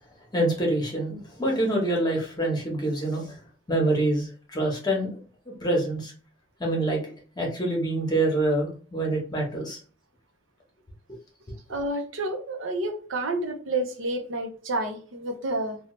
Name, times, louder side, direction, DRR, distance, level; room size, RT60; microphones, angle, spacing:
voice 1, 0.3-3.4 3.7-5.2 5.6-6.1 6.6-7.0 7.4-9.8, right 1 dB, 20° left, 0.9 m, -26 dB
voice 2, 11.7-15.8, right 2 dB, 85° right, 0.7 m, -29 dB
2.9 x 2.3 x 3.0 m
head